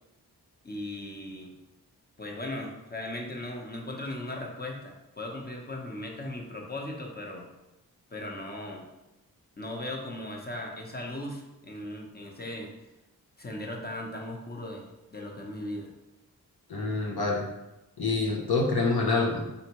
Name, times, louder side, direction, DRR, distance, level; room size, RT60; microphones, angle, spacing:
voice 1, 0.6-1.5 2.2-7.5 8.1-8.9 9.6-12.7 13.4-15.9, left 1 dB, 25° left, 0 dB, 1.0 m, -38 dB
voice 2, 16.7-17.5 18.0-19.5, left 3 dB, 70° left, -1 dB, 1.0 m, -26 dB
4.1 x 3.3 x 3.0 m, 0.96 s
cardioid pair, 40°, 39 cm